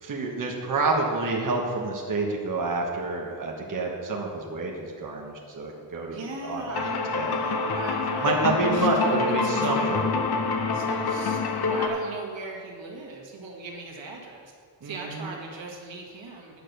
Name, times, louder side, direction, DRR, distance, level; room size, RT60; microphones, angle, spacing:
voice 1, 0.0-6.8 7.1-7.4 8.2-10.0 14.8-15.3, right 3 dB, 45° right, -1 dB, 1.4 m, -28 dB
voice 2, 6.1-8.4 8.7-10.0 10.7-14.5 14.8-16.6, right 3 dB, 90° right, -1 dB, 1.9 m, -38 dB
sound 1, 6.7-11.9, left 4 dB, 60° left, 1.0 m, -26 dB
10.0 x 6.5 x 6.6 m, 2.1 s
wide cardioid pair, 140°, 43 cm